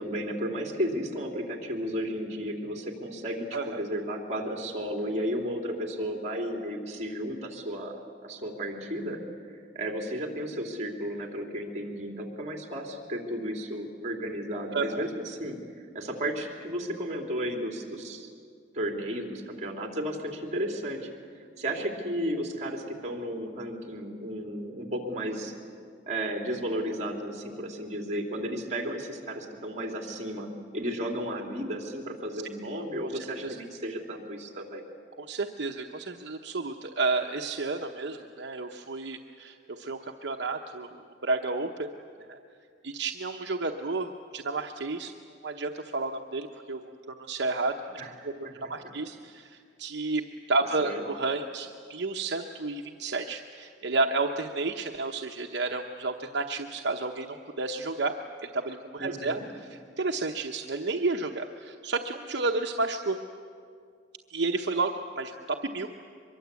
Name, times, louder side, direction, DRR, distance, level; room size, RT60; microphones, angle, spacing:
voice 1, 0.0-3.5 3.8-9.2 9.5-15.6 15.9-18.3 18.7-25.5 26.1-34.8 48.0-48.1 48.4-48.5 50.8-51.0 59.0-59.4, equal, 40° right, 2 dB, 3.1 m, -33 dB
voice 2, 3.5-3.8 14.7-15.1 33.0-33.6 35.2-41.9 42.3-42.4 42.8-45.1 45.4-46.8 47.1-58.1 58.4-63.2 64.3-65.9, right 3 dB, 65° right, 3 dB, 0.9 m, -31 dB
24.0 x 22.5 x 8.3 m, 2.2 s
head